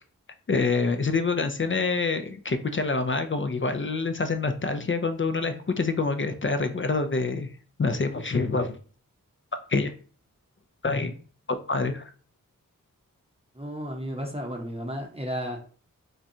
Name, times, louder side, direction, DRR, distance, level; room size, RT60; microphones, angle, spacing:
voice 1, 0.5-7.5 7.8-8.8 9.7-9.9 10.8-11.1 11.5-12.0, left 4 dB, 40° left, 8 dB, 0.4 m, -26 dB
voice 2, 13.6-15.6, equal, 20° right, 1 dB, 0.7 m, -33 dB
5.1 x 2.2 x 2.7 m, 0.41 s
wide cardioid pair, 55°, 33 cm